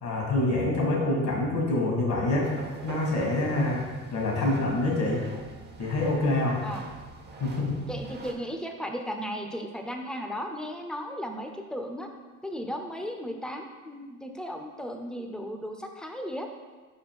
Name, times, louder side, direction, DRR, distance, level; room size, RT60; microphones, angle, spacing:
voice 1, 0.0-2.5 2.8-3.8 4.1-5.2 5.8-6.6 7.4-7.8, left 2 dB, 65° left, -2 dB, 1.9 m, -26 dB
sound 1, 2.4-8.3, right 3 dB, 35° right, 0.8 m, -44 dB
voice 2, 7.9-12.1 12.4-16.5, equal, 5° left, 3 dB, 0.7 m, -35 dB
5.1 x 4.3 x 4.7 m, 1.3 s
cardioid pair, 90°, 30 cm